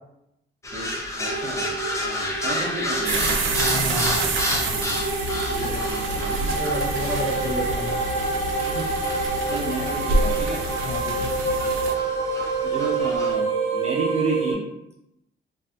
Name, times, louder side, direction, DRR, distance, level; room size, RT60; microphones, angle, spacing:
sound 1, 0.6-13.3, left 1 dB, 15° left, 0.5 m, -32 dB
voice 1, 0.7-3.4 3.9-4.3 5.5-6.6 8.6-8.9 9.5-10.6 12.6-13.5 13.7-14.6, right 3 dB, 35° right, -3 dB, 0.6 m, -32 dB
sound 2, 1.2-14.5, right 3 dB, 35° left, 1.1 m, -27 dB
sound 3, 3.0-11.9, right 2 dB, 90° right, 0.5 m, -28 dB
voice 2, 3.5-4.9 5.6-5.8 6.5-8.0 10.8-11.3, left 1 dB, 55° left, -4 dB, 0.8 m, -32 dB
2.6 x 2.4 x 2.3 m, 0.84 s
cardioid pair, 90°, 20 cm